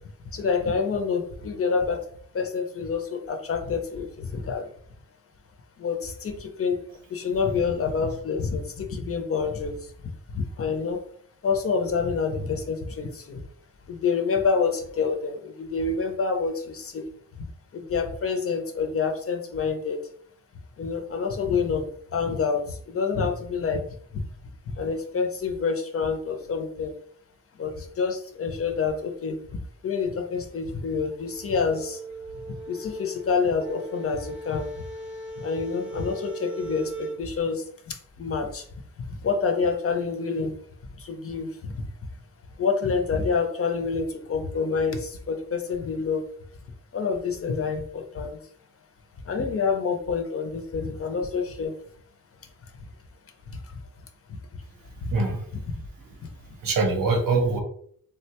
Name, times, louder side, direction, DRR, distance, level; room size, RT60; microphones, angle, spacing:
voice 1, 0.3-2.0 2.3-4.7 5.8-6.8 7.1-9.8 10.3-11.0 11.4-13.4 13.9-17.0 17.7-20.0 20.8-21.9 22.1-23.9 24.7-26.9 27.6-29.4 29.8-32.0 32.7-34.7 35.4-38.6 39.1-40.5 41.0-41.9 42.6-46.2 46.9-48.4 49.3-51.7 54.3-54.4 55.0-55.1, left 5 dB, 45° left, 4 dB, 0.5 m, -27 dB
sound 1, 31.1-37.2, right 2 dB, 5° right, 0.6 m, -38 dB
voice 2, 55.1-55.6 56.0-57.6, right 3 dB, 90° right, 3 dB, 0.8 m, -25 dB
3.7 x 2.1 x 2.8 m, 0.62 s
wide cardioid pair, 165°, 32 cm